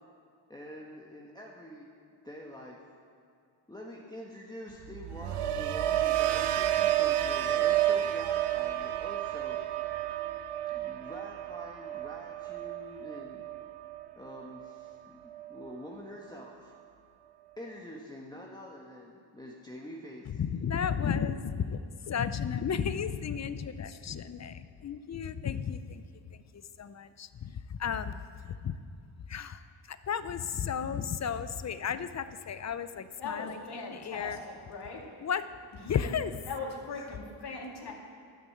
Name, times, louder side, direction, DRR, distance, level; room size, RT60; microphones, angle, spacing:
voice 1, 0.5-1.9 2.2-2.8 3.7-9.6 10.7-13.4 14.2-16.7 17.6-20.4, equal, 10° left, -3 dB, 1.2 m, -46 dB
sound 1, 4.8-14.9 15.3-15.7, right 12 dB, 90° right, 0.7 m, -31 dB
voice 2, 20.3-26.0 26.3-28.8 29.3-34.4 35.2-35.4 35.8-36.3, left 7 dB, 35° left, 12 dB, 0.5 m, -34 dB
voice 3, 33.2-35.0 35.8-36.2 36.5-37.9, left 3 dB, 50° left, -1 dB, 2.4 m, -40 dB
11.5 x 6.2 x 7.7 m, 2.3 s
cardioid pair, 85°, 50 cm